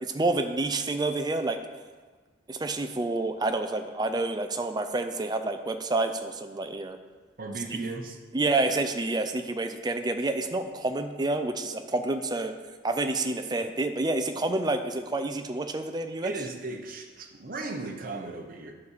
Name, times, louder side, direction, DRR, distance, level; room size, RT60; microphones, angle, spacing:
voice 1, 0.0-1.6 2.5-7.0 7.7-7.8 8.3-12.5 12.8-16.3, right 2 dB, 20° right, 7 dB, 0.5 m, -28 dB
voice 2, 7.4-8.2 16.2-18.7, right 3 dB, 45° right, 3 dB, 0.9 m, -36 dB
9.6 x 4.2 x 6.7 m, 1.4 s
head